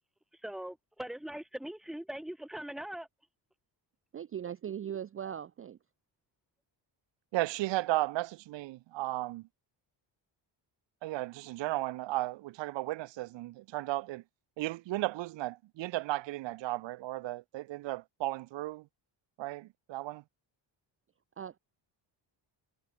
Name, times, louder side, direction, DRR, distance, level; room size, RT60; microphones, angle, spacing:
voice 1, 0.4-3.1, right 1 dB, ahead, 0.8 m, -41 dB
voice 2, 4.1-5.8 21.4-21.6, right 9 dB, 30° right, 0.4 m, -39 dB
voice 3, 7.3-9.5 11.0-14.2 14.6-18.9 19.4-20.2, right 17 dB, 75° right, 0.6 m, -35 dB
cardioid pair, 130°, 46 cm